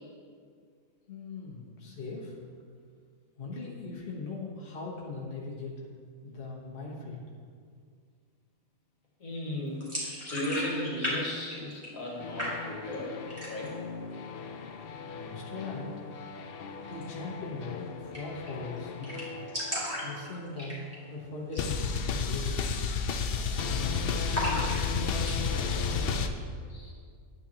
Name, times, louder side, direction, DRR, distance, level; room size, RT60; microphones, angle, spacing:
voice 1, 1.1-2.3 3.4-5.7 6.2-7.2 15.1-15.9 16.8-19.2 20.0-22.5, left 3 dB, 40° left, -4 dB, 1.3 m, -39 dB
voice 2, 9.2-13.2 13.5-13.7 26.7-26.9, left 1 dB, 60° left, -3 dB, 2.0 m, -36 dB
sound 1, 9.8-11.2 11.4-12.1 12.4-12.9 13.3-13.8 14.1-14.2 14.6-15.2 16.9-17.1 17.4-17.5 17.7-17.8 18.1-18.5 18.8-18.9 19.0-21.1 21.4-21.7 22.0-22.1 22.7-23.0 23.2-23.8 24.3-25.4, equal, 10° right, 2.5 m, -35 dB
sound 2, 12.2-20.7 21.6-26.3, left 5 dB, 80° left, 0.5 m, -33 dB
9.7 x 9.3 x 2.9 m, 2.1 s
omnidirectional pair, 1.6 m